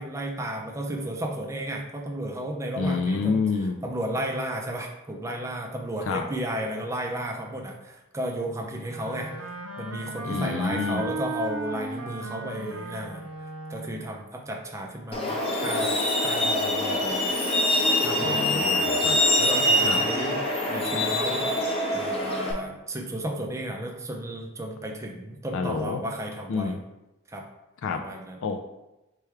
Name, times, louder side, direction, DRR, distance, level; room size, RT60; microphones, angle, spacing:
voice 1, 0.0-3.4 3.8-13.3 13.7-15.4 15.6-16.0 16.2-17.3 18.0-18.8 19.4-26.8 27.3-27.4 27.9-28.4, right 1 dB, 15° right, 1 dB, 0.4 m, -33 dB
voice 2, 2.8-3.8 6.1-6.2 10.2-11.0 18.2-19.2 19.8-20.0 25.5-26.0 26.5-26.8 27.8-28.0 28.4-28.6, left 4 dB, 55° left, 4 dB, 0.3 m, -28 dB
Wind instrument woodwind instrument, 8.8-14.2, right 2 dB, 75° right, 0.6 m, -36 dB
Truck, 15.1-22.5, left 1 dB, 25° left, 0.7 m, -24 dB
3.4 x 3.3 x 4.7 m, 0.99 s
head